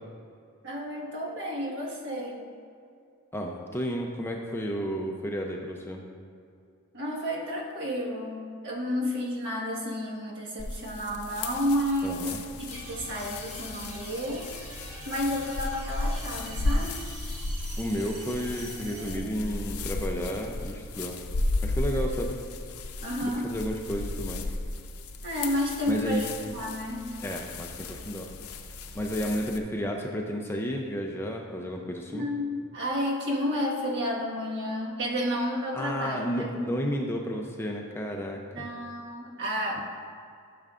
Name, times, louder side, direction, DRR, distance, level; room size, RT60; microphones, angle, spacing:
voice 1, 0.6-2.4 6.9-14.5 15.0-16.9 23.0-23.5 25.2-27.2 32.1-36.5 38.5-39.9, equal, 55° right, -3 dB, 1.5 m, -31 dB
voice 2, 3.3-6.0 12.0-12.4 17.8-21.2 21.6-22.4 23.2-24.5 25.9-26.2 27.2-28.3 28.9-32.3 35.7-38.7, equal, 10° left, 1 dB, 0.5 m, -32 dB
sound 1, 10.6-29.6, left 2 dB, 75° left, 0.6 m, -34 dB
sound 2, 12.7-19.2, right 1 dB, 70° right, 1.6 m, -44 dB
12.5 x 6.7 x 2.5 m, 2.4 s
head